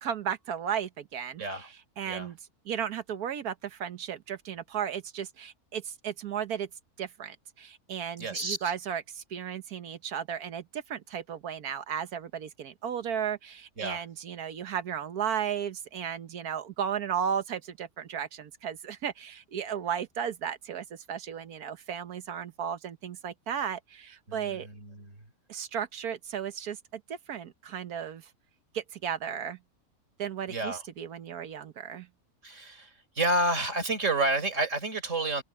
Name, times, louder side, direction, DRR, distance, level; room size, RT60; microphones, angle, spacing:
voice 1, 0.0-2.4 2.6-6.7 7.0-24.7 25.5-28.3 28.7-29.6 30.2-32.1, right 8 dB, 80° right, 1.5 m, -35 dB
voice 2, 8.2-8.6 13.8-14.0 24.3-25.2 30.5-30.8 32.4-35.4, right 2 dB, 50° right, 4.4 m, -30 dB
omnidirectional pair, 1.6 m